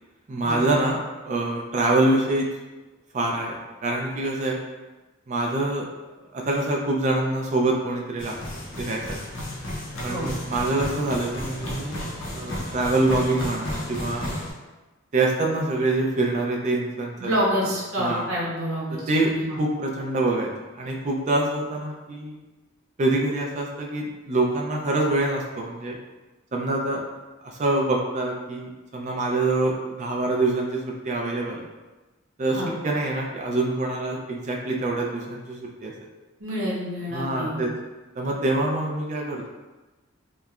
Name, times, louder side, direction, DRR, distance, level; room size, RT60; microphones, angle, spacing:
voice 1, 0.3-1.0 1.3-2.5 3.1-4.6 5.3-5.9 6.3-8.3 8.8-9.2 10.0-12.0 12.3-14.3 15.1-17.3 18.0-18.3 19.1-19.3 19.6-20.5 20.7-22.4 23.0-26.0 26.5-27.0 27.4-31.6 32.4-35.9 37.1-37.7 38.2-39.5, right 2 dB, 35° right, 0 dB, 0.3 m, -25 dB
sound 1, 8.2-14.5, left 1 dB, 65° left, 0.6 m, -33 dB
voice 2, 17.2-19.6 32.5-32.7 36.4-37.7, equal, 85° right, -6 dB, 0.7 m, -28 dB
2.9 x 2.0 x 2.3 m, 1.2 s
head